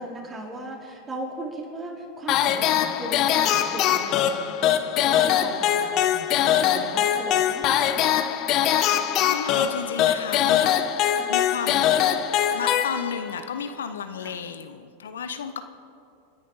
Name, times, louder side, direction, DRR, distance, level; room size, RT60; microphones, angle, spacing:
voice 1, 0.0-6.3 6.6-8.1 14.2-14.3, right 1 dB, 20° right, -2 dB, 4.3 m, -37 dB
sound 1, 2.3-13.4, left 10 dB, 45° left, 1.0 m, -22 dB
voice 2, 9.3-11.9 12.5-15.6, left 7 dB, 80° left, 9 dB, 0.9 m, -33 dB
29.5 x 10.0 x 4.2 m, 2.6 s
hypercardioid pair, 95°, 0 cm